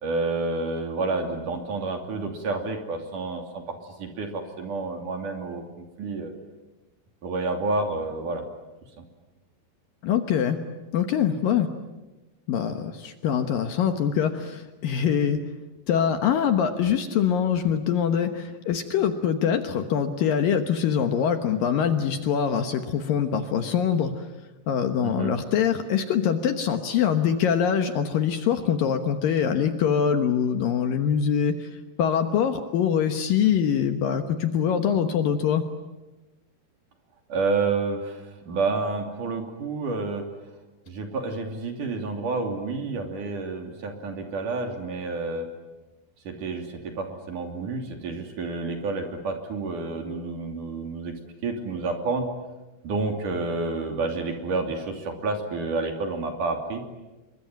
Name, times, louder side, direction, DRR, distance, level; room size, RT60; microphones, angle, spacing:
voice 1, 0.0-6.3 7.2-8.4 9.0-9.1 25.0-25.3 37.3-40.3 40.9-45.5 46.2-51.1 51.4-52.3 52.8-56.8, right 3 dB, 50° right, 4 dB, 4.1 m, -29 dB
voice 2, 10.0-10.6 10.9-11.7 12.5-15.4 15.9-24.3 24.7-31.7 32.0-35.6, left 8 dB, 65° left, 7 dB, 2.6 m, -24 dB
27.5 x 23.5 x 9.1 m, 1.1 s
omnidirectional pair, 4.9 m